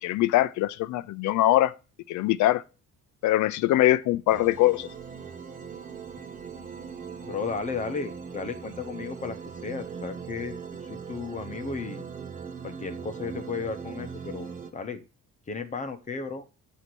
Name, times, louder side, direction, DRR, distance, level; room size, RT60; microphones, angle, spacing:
voice 1, 0.0-1.7 2.1-2.6 3.2-4.9, left 15 dB, 65° left, 0.5 m, -22 dB
sound 1, 4.3-14.7, right 6 dB, 25° right, 0.6 m, -40 dB
voice 2, 7.2-9.4 9.6-12.0 12.6-14.5 14.7-15.0 15.5-16.4, left 4 dB, 25° left, 0.8 m, -34 dB
8.1 x 2.9 x 6.0 m
cardioid pair, 160°, 32 cm